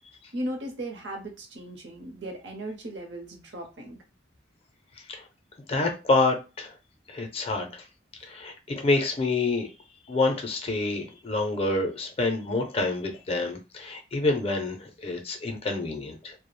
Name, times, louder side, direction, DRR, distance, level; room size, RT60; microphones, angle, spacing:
voice 1, 0.3-4.0, right 1 dB, 70° right, 0.7 m, -37 dB
voice 2, 5.7-6.7 7.1-7.8 8.2-9.7 10.1-16.3, left 2 dB, 30° left, 0.4 m, -27 dB
2.3 x 2.0 x 3.0 m
head